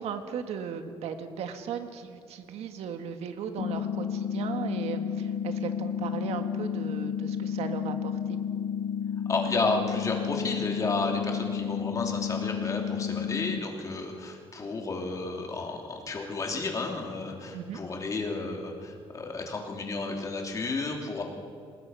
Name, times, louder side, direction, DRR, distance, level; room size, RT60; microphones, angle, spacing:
voice 1, 0.0-8.4 17.5-17.8, right 7 dB, 80° right, 7 dB, 1.7 m, -36 dB
sound 1, 3.6-13.6, left 8 dB, 65° left, 0.9 m, -31 dB
voice 2, 9.3-21.2, left 3 dB, 30° left, 1 dB, 3.0 m, -32 dB
27.5 x 19.0 x 5.7 m, 2.3 s
cardioid pair, 135°, 10 cm